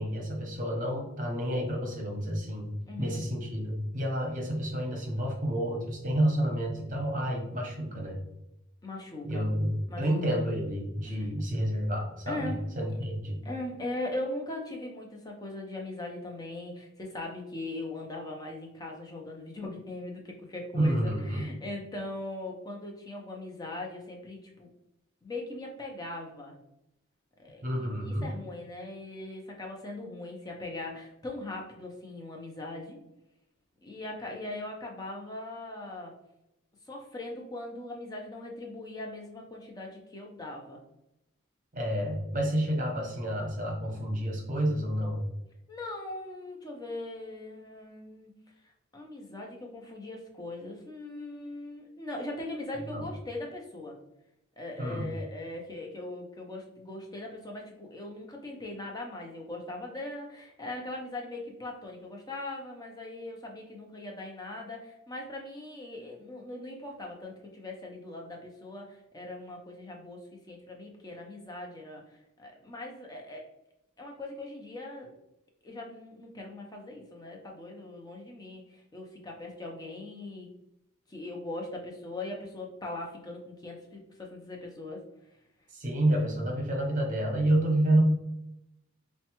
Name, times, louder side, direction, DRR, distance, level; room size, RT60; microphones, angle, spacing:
voice 1, 0.0-2.7 3.0-8.2 9.2-13.4 20.7-21.5 27.6-28.3 41.7-45.2 52.9-53.0 54.8-55.2 85.7-88.0, right 1 dB, 35° right, 1 dB, 0.8 m, -29 dB
voice 2, 2.9-3.2 8.8-9.5 9.9-10.4 11.1-11.2 12.3-12.6 13.4-24.7 25.2-26.6 27.4-33.0 33.8-36.1 36.9-40.8 45.7-48.3 48.6-54.0 54.6-72.0 72.4-73.4 74.0-75.1 75.6-80.5 81.1-85.0, left 2 dB, 15° left, 0 dB, 0.6 m, -40 dB
4.4 x 2.1 x 2.9 m, 0.86 s
head